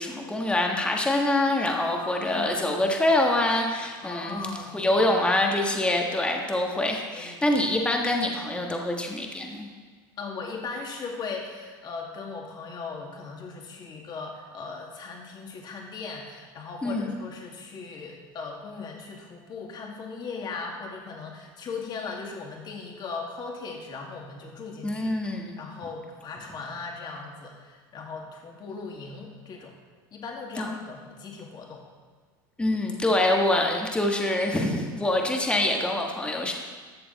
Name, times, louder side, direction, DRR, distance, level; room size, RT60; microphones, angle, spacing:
voice 1, 0.0-9.7 16.8-17.2 24.8-25.6 30.6-30.8 32.6-36.5, left 1 dB, 10° left, 1 dB, 1.4 m, -25 dB
voice 2, 1.9-2.9 4.0-5.3 7.1-7.4 10.2-25.1 25.6-29.7 30.1-31.8, left 4 dB, 35° left, 1 dB, 2.2 m, -38 dB
13.5 x 6.9 x 4.1 m, 1.5 s
hypercardioid pair, 100°, 12 cm